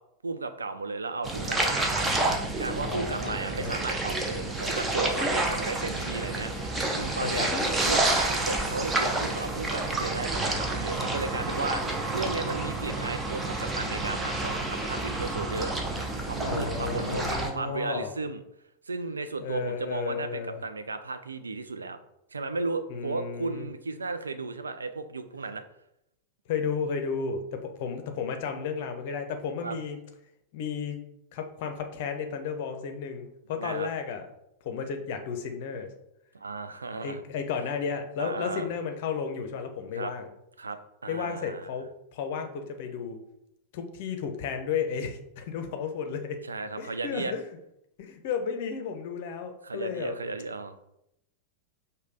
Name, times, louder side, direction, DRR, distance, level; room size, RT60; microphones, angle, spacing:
voice 1, 0.2-7.5 7.8-15.7 16.2-18.4 18.9-22.0 22.3-25.6 29.6-29.8 33.5-33.9 36.3-37.2 38.2-38.7 39.9-40.1 40.6-41.7 46.4-47.3 49.6-50.8, right 3 dB, 75° right, 9 dB, 0.3 m, -35 dB
sound 1, 1.2-17.5, right 2 dB, 15° right, 0.6 m, -29 dB
voice 2, 2.8-3.8 7.2-7.6 16.4-18.1 19.4-20.6 22.9-23.7 26.5-30.0 30.5-31.0 31.3-34.2 34.6-35.9 37.0-40.3 41.1-43.2 43.7-46.4 46.8-47.4 48.0-50.2, left 6 dB, 50° left, 6 dB, 0.6 m, -33 dB
5.1 x 2.2 x 3.8 m, 0.82 s
figure-of-eight pair, 90°, 0 cm